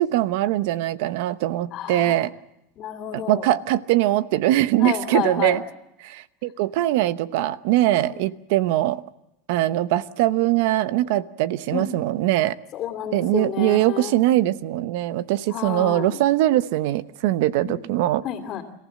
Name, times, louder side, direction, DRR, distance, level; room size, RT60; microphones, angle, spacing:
voice 1, 0.0-2.3 3.1-5.6 6.0-9.0 9.5-12.6 13.1-18.2, right 14 dB, 70° right, 0.9 m, -22 dB
voice 2, 1.7-2.2 2.8-3.5 4.8-5.6 8.0-8.2 11.7-11.9 12.7-14.2 15.5-16.2 17.6-17.8 18.2-18.6, left 10 dB, 40° left, 2.8 m, -30 dB
30.0 x 15.0 x 7.6 m
supercardioid pair, 125°, 0 cm